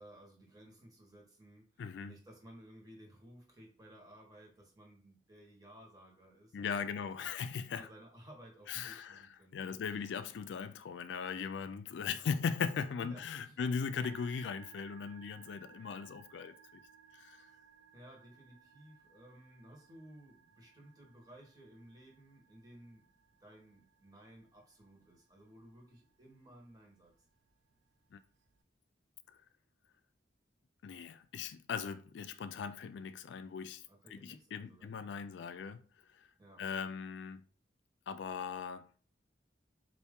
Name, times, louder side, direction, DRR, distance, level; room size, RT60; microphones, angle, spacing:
voice 1, 0.0-7.3 7.7-9.8 12.1-12.3 13.0-13.6 17.4-27.3 33.9-35.2 36.4-36.6, right 1 dB, 20° right, 1.2 m, -57 dB
voice 2, 1.8-2.2 6.5-7.9 8.7-16.8 17.1-17.5 28.1-28.2 29.3-29.4 30.8-36.3 36.6-37.4 38.1-38.9, left 6 dB, 80° left, 0.3 m, -39 dB
Musical instrument, 14.0-28.6, right 6 dB, 90° right, 0.5 m, -62 dB
4.2 x 2.6 x 3.6 m
head